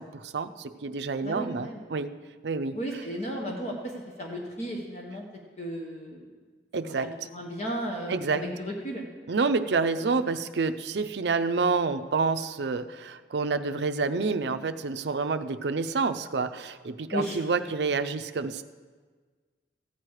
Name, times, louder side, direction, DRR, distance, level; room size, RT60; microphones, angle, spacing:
voice 1, 0.0-2.1 2.4-2.8 6.7-7.1 8.1-8.4 9.3-18.6, right 4 dB, 65° right, 10 dB, 0.5 m, -28 dB
voice 2, 1.2-1.8 2.7-5.2 5.6-6.2 6.9-9.1 17.1-17.4, equal, 40° left, 0 dB, 1.2 m, -34 dB
15.0 x 9.2 x 4.8 m, 1.5 s
head